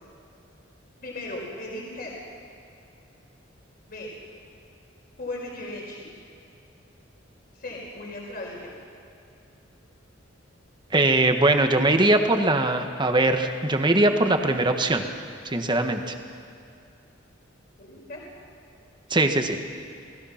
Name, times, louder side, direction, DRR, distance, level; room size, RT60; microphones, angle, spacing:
voice 1, 1.0-2.1 3.9-4.1 5.2-6.0 7.5-8.7 12.0-12.1 17.8-18.2, left 1 dB, 50° left, -3 dB, 4.9 m, -36 dB
voice 2, 10.9-15.0 15.5-16.1 19.1-19.6, right 2 dB, 25° right, 5 dB, 1.4 m, -21 dB
29.0 x 19.5 x 5.9 m, 2.6 s
head